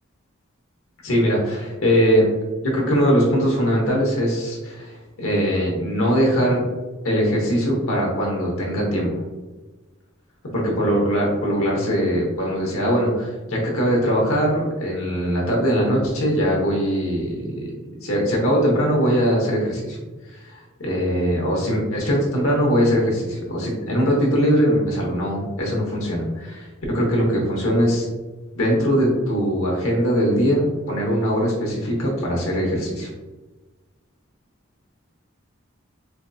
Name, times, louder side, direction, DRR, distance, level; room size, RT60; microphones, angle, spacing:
voice 1, 1.0-2.3 2.6-4.9 5.2-6.6 7.0-9.1 10.5-17.7 18.0-20.0 20.3-28.1 28.5-33.1, equal, 80° left, -2 dB, 1.0 m, -21 dB
4.5 x 2.6 x 2.3 m, 1.2 s
head